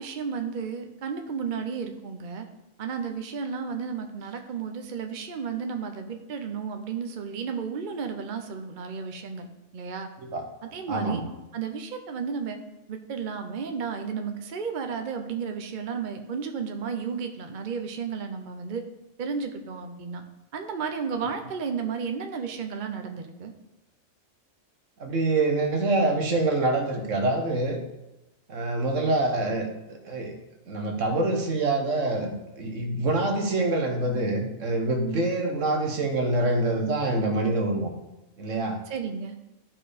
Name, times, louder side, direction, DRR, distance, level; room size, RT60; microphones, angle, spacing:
voice 1, 0.0-2.4 2.8-9.5 9.7-10.1 10.6-11.2 11.5-12.6 12.9-18.8 19.2-20.2 20.5-23.5 38.9-39.4, right 6 dB, 45° right, 5 dB, 0.7 m, -33 dB
voice 2, 10.9-11.2 25.0-27.8 28.5-30.3 30.7-37.9 38.4-38.8, right 2 dB, 65° right, 4 dB, 1.5 m, -26 dB
12.0 x 4.4 x 5.0 m, 0.97 s
omnidirectional pair, 1.4 m